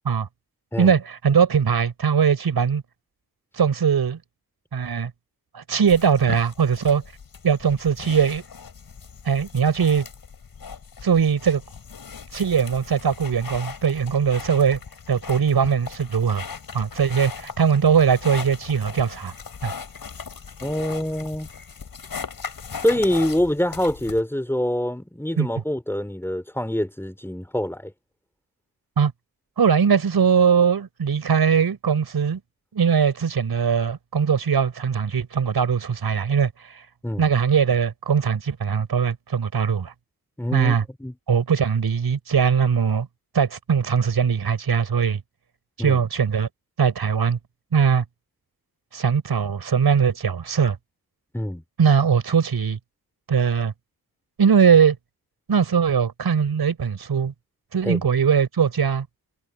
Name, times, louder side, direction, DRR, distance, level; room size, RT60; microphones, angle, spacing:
voice 1, 0.8-2.8 3.6-4.2 4.7-5.1 5.5-7.0 7.4-8.4 9.2-10.0 11.0-11.6 12.3-14.8 15.1-16.4 16.7-19.3 19.6-19.7 25.4-25.5 29.0-29.1 29.6-32.4 32.7-36.8 37.2-39.9 40.5-40.8 41.3-43.1 43.3-45.2 45.8-46.5 46.8-47.4 47.7-48.0 48.9-50.8 51.8-52.8 53.3-53.7 54.4-55.0 55.5-57.3 57.7-59.1, right 6 dB, 85° right, 5.0 m, -20 dB
sound 1, 5.9-24.2, left 6 dB, 70° left, 5.6 m, -38 dB
voice 2, 20.6-21.5 22.8-27.9 37.0-37.3 40.4-41.1 45.8-46.0 51.3-51.6 57.8-58.0, left 1 dB, 5° left, 3.7 m, -25 dB
wide cardioid pair, 120°, 37 cm